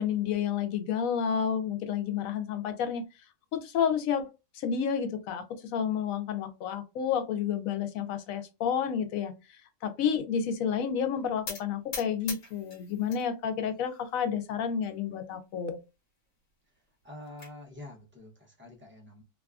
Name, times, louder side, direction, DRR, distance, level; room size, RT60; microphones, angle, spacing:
voice 1, 0.0-3.0 3.5-4.3 4.5-5.4 5.7-9.3 9.8-15.8, left 7 dB, 90° left, 1.0 m, -30 dB
sound 1, 11.5-13.2 13.6-14.3 14.8-14.9 15.2-15.3 15.7-15.8 16.9-17.5, left 4 dB, 75° left, 1.3 m, -42 dB
voice 2, 17.0-19.2, left 2 dB, 15° right, 0.4 m, -47 dB
2.6 x 2.3 x 2.3 m
omnidirectional pair, 1.4 m